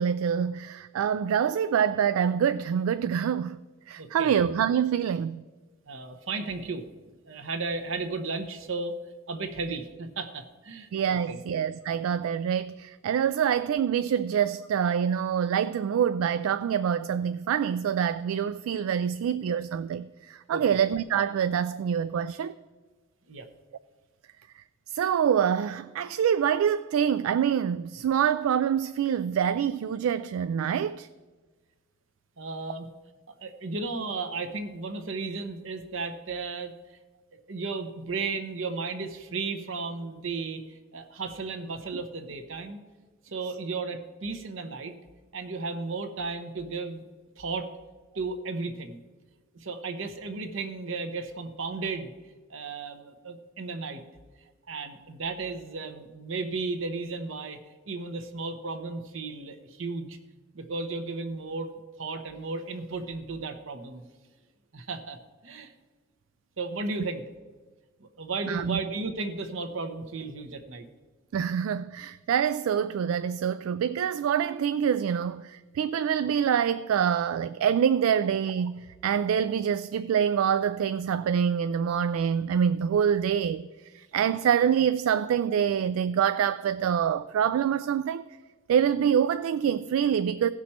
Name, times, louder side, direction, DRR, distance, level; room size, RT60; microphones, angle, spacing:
voice 1, 0.0-3.6 3.9-5.4 10.9-22.5 24.9-31.1 68.5-68.8 71.3-83.7 84.1-88.2 88.7-90.5, right 8 dB, 85° right, 0.3 m, -26 dB
voice 2, 4.0-4.3 5.9-6.8 7.3-8.9 9.3-11.4 20.5-20.8 23.3-23.5 32.4-32.9 33.3-36.7 37.3-42.8 43.2-44.9 45.3-47.0 47.4-47.7 48.1-49.0 49.5-54.0 54.7-57.6 57.9-60.2 60.5-61.7 62.0-64.1 64.7-65.7 66.6-67.2 68.0-70.9, right 3 dB, 65° right, 0.9 m, -34 dB
16.5 x 6.1 x 4.3 m
head